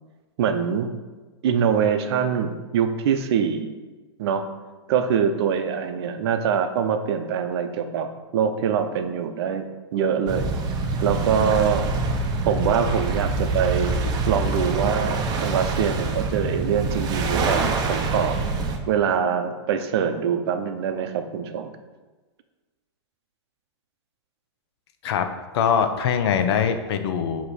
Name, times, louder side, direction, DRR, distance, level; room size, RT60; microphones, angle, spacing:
voice 1, 0.4-1.0 1.4-3.7 4.2-4.5 4.9-9.7 9.9-10.5 11.0-11.9 12.4-18.4 18.9-21.7, right 7 dB, 60° right, 8 dB, 0.7 m, -24 dB
sound 1, 10.3-18.8, right 3 dB, 30° right, 0.7 m, -25 dB
voice 2, 25.5-27.5, left 7 dB, 60° left, 8 dB, 0.8 m, -22 dB
7.6 x 3.0 x 4.8 m, 1.3 s
hypercardioid pair, 135°, 15 cm